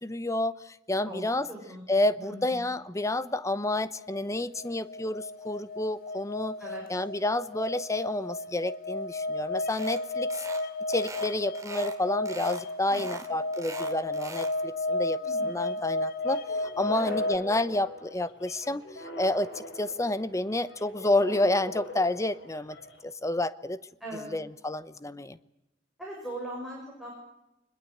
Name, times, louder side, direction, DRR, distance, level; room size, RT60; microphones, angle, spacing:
voice 1, 0.0-1.5 1.9-6.6 6.9-10.4 10.9-15.2 15.4-18.8 19.2-22.8 23.0-23.8 24.3-25.4, left 1 dB, 15° left, 15 dB, 0.8 m, -29 dB
voice 2, 1.0-1.8 2.2-2.7 6.6-6.8 12.9-13.2 15.2-15.8 16.9-17.2 24.0-24.4 26.0-27.1, right 1 dB, ahead, -4 dB, 6.4 m, -41 dB
sound 1, 4.0-17.4, left 2 dB, 50° left, 0.8 m, -33 dB
sound 2, 9.7-10.0 10.3-10.6 10.9-12.0 12.2-12.6 12.9-14.5, right 3 dB, 15° right, 2.6 m, -42 dB
sound 3, 16.2-23.0, left 2 dB, 70° left, 4.4 m, -42 dB
24.0 x 21.0 x 8.0 m, 0.89 s
head